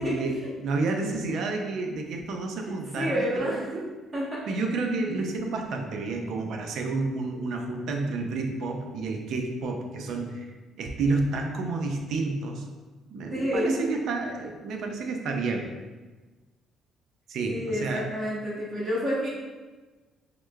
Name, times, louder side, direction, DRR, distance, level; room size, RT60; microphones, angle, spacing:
voice 1, 0.0-4.0 4.5-10.5 10.8-12.7 13.1-15.7 17.3-18.1, right 3 dB, 60° right, 3 dB, 0.4 m, -30 dB
voice 2, 2.6-3.7 4.1-4.4 13.3-13.8 17.5-19.3, equal, 25° right, -7 dB, 1.1 m, -29 dB
4.7 x 2.2 x 2.2 m, 1.3 s
cardioid pair, 145°, 0 cm